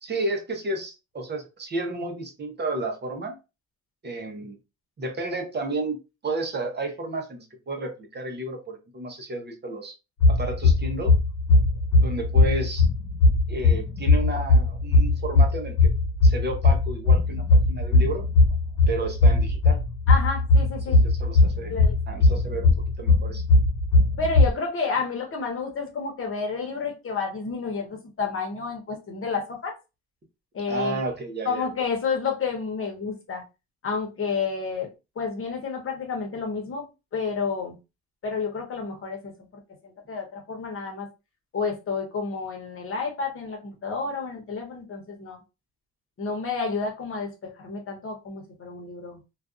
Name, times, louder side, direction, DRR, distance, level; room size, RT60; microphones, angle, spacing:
voice 1, 0.0-3.4 4.0-4.6 5.0-9.9 10.3-11.1 12.0-12.9 13.5-15.9 16.2-18.2 18.9-19.8 20.8-21.7 22.1-22.7 23.0-23.4 30.7-31.7, right 2 dB, 35° right, 3 dB, 0.8 m, -32 dB
sound 1, 10.2-24.5, left 3 dB, 80° left, 1.1 m, -19 dB
voice 2, 20.1-21.0 21.7-22.2 24.2-29.7 30.5-31.0 31.4-33.4 33.8-34.9 35.2-36.8 37.1-37.8 38.2-39.3 39.8-41.1 41.5-45.4 46.2-47.3 47.6-49.2, left 5 dB, 45° left, 2 dB, 1.0 m, -30 dB
2.5 x 2.3 x 2.4 m, 0.27 s
cardioid pair, 90°, 30 cm